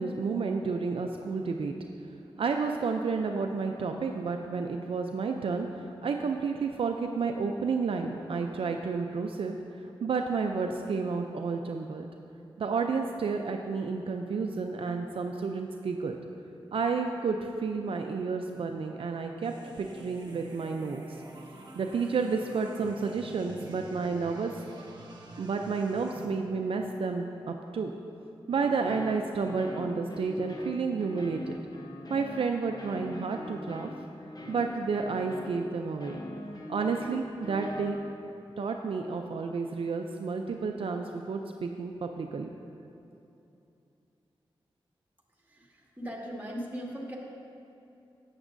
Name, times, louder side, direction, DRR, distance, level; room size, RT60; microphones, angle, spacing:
voice 1, 0.0-1.7 2.4-9.6 9.8-12.1 12.6-16.2 16.7-21.2 21.8-24.5 25.4-27.9 28.5-31.6 32.1-33.9 34.5-36.2 36.7-38.0 38.6-42.5, right 4 dB, 70° right, 4 dB, 0.4 m, -31 dB
sound 1, 19.4-26.2, right 1 dB, 45° right, 1.2 m, -48 dB
sound 2, 28.5-37.9, left 1 dB, 40° left, 0.8 m, -43 dB
voice 2, 45.4-47.2, equal, 15° right, -3 dB, 1.8 m, -39 dB
10.5 x 8.1 x 2.6 m, 2.7 s
cardioid pair, 50°, 10 cm